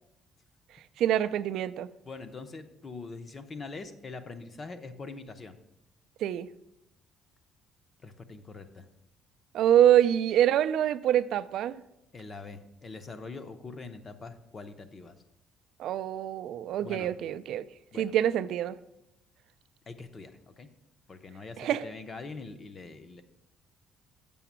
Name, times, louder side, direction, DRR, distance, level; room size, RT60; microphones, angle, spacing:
voice 1, 1.0-1.9 6.2-6.5 9.5-11.8 15.8-17.6 18.0-18.8 21.6-21.8, right 11 dB, 60° right, 0.4 m, -25 dB
voice 2, 2.1-5.6 8.0-8.9 12.1-15.2 16.8-17.1 17.9-18.1 19.9-20.7 21.1-23.2, left 3 dB, 25° left, 0.6 m, -43 dB
7.0 x 5.8 x 7.3 m
cardioid pair, 175°, 0 cm